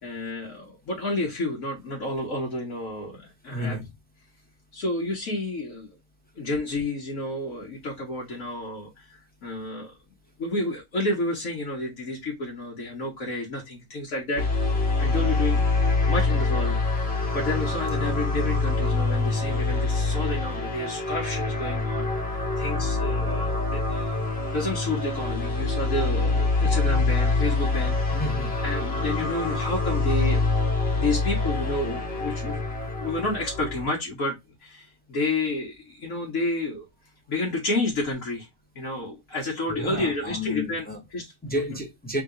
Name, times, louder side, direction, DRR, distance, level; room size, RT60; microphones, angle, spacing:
voice 1, 0.0-3.8 4.7-5.9 6.4-9.1 9.4-9.9 10.4-14.4 15.0-15.6 16.1-16.8 17.3-22.1 22.6-24.2 24.5-28.2 28.6-30.4 31.0-32.6 33.0-36.9 37.3-38.5 38.7-40.9 41.1-41.6, left 2 dB, 75° left, 1.5 m, -30 dB
voice 2, 3.5-3.9 28.1-28.6 39.7-41.0 41.4-42.2, left 1 dB, 10° left, 0.7 m, -31 dB
sound 1, 14.4-33.8, left 3 dB, 50° left, 1.4 m, -25 dB
3.4 x 3.0 x 3.6 m
omnidirectional pair, 1.4 m